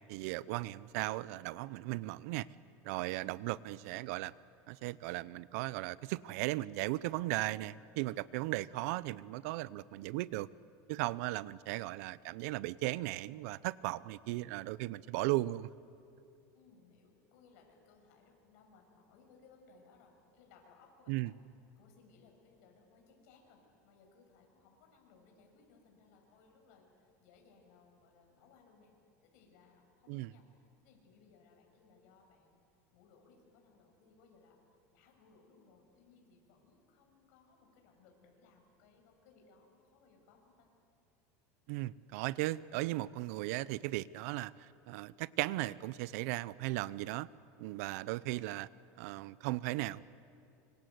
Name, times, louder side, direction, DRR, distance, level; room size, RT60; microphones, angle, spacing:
voice 1, 0.1-2.5 2.8-4.3 4.7-10.5 10.9-15.7 21.1-21.3 30.1-30.3 41.7-47.3 47.6-48.7 49.0-50.0, right 18 dB, 70° right, 19 dB, 0.7 m, -37 dB
voice 2, 3.6-4.1 11.4-11.8 16.5-21.3 21.8-28.9 29.2-32.6 32.9-34.6 34.9-40.7 47.9-48.2, left 4 dB, 70° left, 2 dB, 6.3 m, -64 dB
25.5 x 24.5 x 8.0 m, 2.6 s
supercardioid pair, 140°, 8 cm